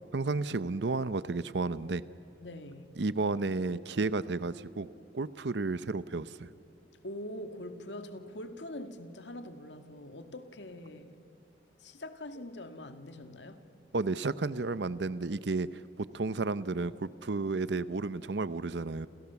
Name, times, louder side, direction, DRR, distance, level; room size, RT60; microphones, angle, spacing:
voice 1, 0.1-2.0 3.0-4.9 5.1-6.5 13.9-15.7 16.0-19.1, right 3 dB, 70° right, 16 dB, 0.7 m, -32 dB
voice 2, 2.4-2.9 7.0-11.2 11.8-13.6, left 1 dB, 85° left, 8 dB, 2.1 m, -43 dB
30.0 x 28.0 x 7.1 m, 2.7 s
head